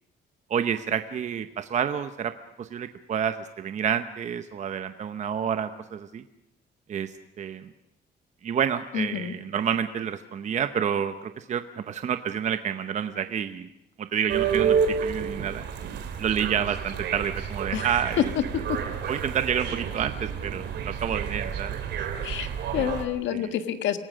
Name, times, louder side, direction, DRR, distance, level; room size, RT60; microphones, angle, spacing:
voice 1, 0.5-2.3 2.6-6.2 6.9-7.7 8.4-13.7 14.0-15.6 16.2-18.2 19.1-21.8 22.7-22.9 23.3-23.5, right 8 dB, 40° right, 9 dB, 0.8 m, -29 dB
voice 2, 8.9-9.3 17.7-17.9 18.2-18.3 18.7-18.8 22.0-24.0, left 10 dB, 90° left, 9 dB, 1.5 m, -28 dB
sound 1, 14.3-23.0, right 7 dB, 70° right, 2.7 m, -30 dB
27.0 x 17.5 x 6.4 m, 0.80 s
cardioid pair, 155°, 19 cm